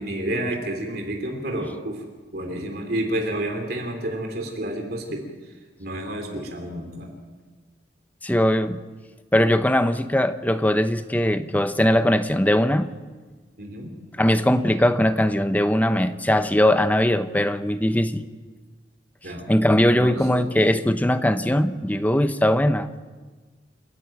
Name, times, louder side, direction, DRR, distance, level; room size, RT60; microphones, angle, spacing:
voice 1, 0.0-2.0 2.3-5.2 5.8-7.1 13.6-13.9 19.2-19.4 19.9-20.5, right 1 dB, 55° right, 3 dB, 3.0 m, -30 dB
voice 2, 8.2-8.8 9.3-12.9 14.2-18.2 19.5-22.9, left 1 dB, 10° left, 10 dB, 0.7 m, -20 dB
29.0 x 10.5 x 8.9 m, 1.4 s
head